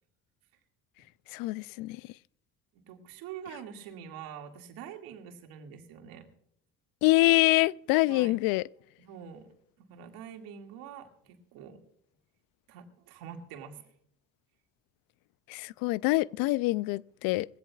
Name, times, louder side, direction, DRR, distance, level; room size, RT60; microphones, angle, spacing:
voice 1, 1.3-2.0 7.0-8.6 15.5-17.5, left 20 dB, 70° left, 0.5 m, -25 dB
voice 2, 2.7-6.3 8.1-8.4 9.0-9.5 9.8-11.8 12.7-13.8, right 8 dB, 75° right, 2.2 m, -45 dB
20.5 x 16.0 x 2.3 m
supercardioid pair, 70°, 35 cm